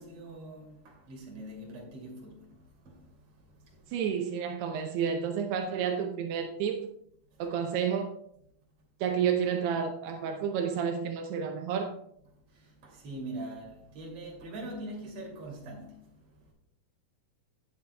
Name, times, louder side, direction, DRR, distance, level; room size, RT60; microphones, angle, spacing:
voice 1, 0.0-3.9 7.3-7.4 12.5-16.5, right 1 dB, 40° right, 3.0 m, -44 dB
voice 2, 3.9-6.9 7.4-8.1 9.0-12.0, right 7 dB, 80° right, 2.7 m, -30 dB
18.0 x 7.0 x 2.2 m
omnidirectional pair, 4.7 m